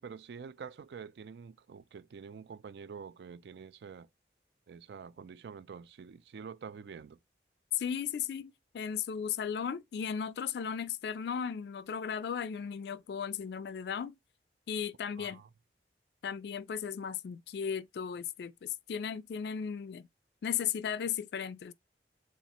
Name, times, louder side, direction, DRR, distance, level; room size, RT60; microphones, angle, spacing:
voice 1, 0.0-4.1 4.7-7.2 15.2-15.5, right 6 dB, 70° right, 0.3 m, -47 dB
voice 2, 7.7-14.2 14.7-15.4 16.2-20.1 20.4-21.7, left 7 dB, 70° left, 0.3 m, -36 dB
6.9 x 2.4 x 2.9 m
head